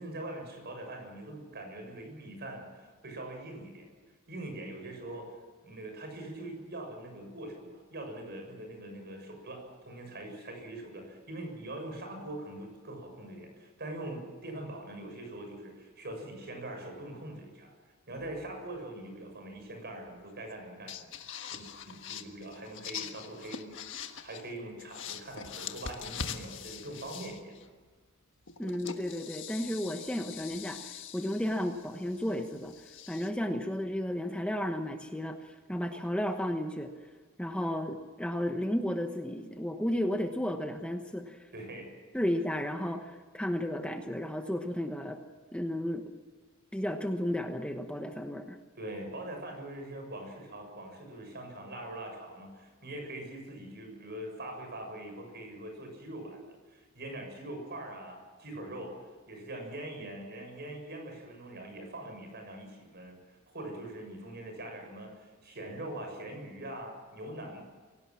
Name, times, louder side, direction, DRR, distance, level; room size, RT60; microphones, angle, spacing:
voice 1, 0.0-3.9 4.3-5.4 5.6-17.7 18.1-27.7 41.5-41.9 48.8-59.0 59.3-67.6, right 1 dB, 50° right, 4 dB, 7.0 m, -43 dB
sound 1, 18.2-18.8 20.5-20.6 20.9-24.5 24.8-27.7 28.5-33.3, left 7 dB, 65° left, 1.5 m, -43 dB
voice 2, 28.6-32.7 33.1-36.9 37.4-41.5 42.1-45.2 45.5-46.0 46.7-48.6, left 1 dB, 5° left, 5 dB, 1.2 m, -33 dB
24.0 x 17.5 x 7.6 m, 1.5 s
head